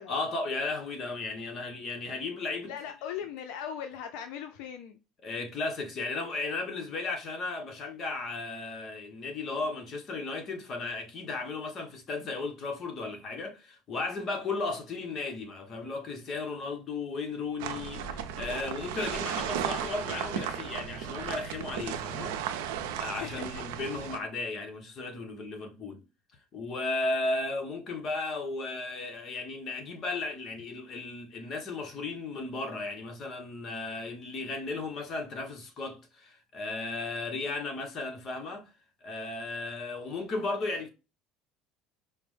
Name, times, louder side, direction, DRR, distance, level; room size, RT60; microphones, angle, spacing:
voice 1, 0.1-2.7 5.2-22.4 23.0-26.0 26.5-38.7 39.0-40.9, left 3 dB, 40° left, 1.0 m, -35 dB
voice 2, 2.7-5.0 23.1-23.5, left 9 dB, 80° left, 0.5 m, -39 dB
sound 1, 17.6-24.2, right 9 dB, 90° right, 0.5 m, -35 dB
5.0 x 2.1 x 3.2 m
supercardioid pair, 110°, 0 cm